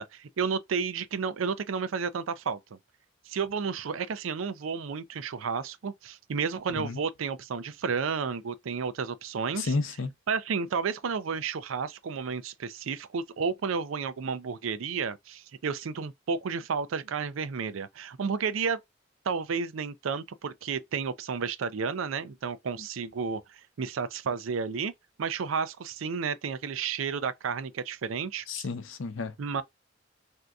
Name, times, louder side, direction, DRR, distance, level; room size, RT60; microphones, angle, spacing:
voice 1, 0.0-2.8 3.3-9.7 10.3-18.8 19.3-24.9 25.2-28.6 29.4-29.6, right 5 dB, 85° right, 0.5 m, -32 dB
voice 2, 9.5-10.1 28.5-29.3, left 3 dB, 80° left, 0.6 m, -31 dB
3.4 x 2.7 x 2.4 m
head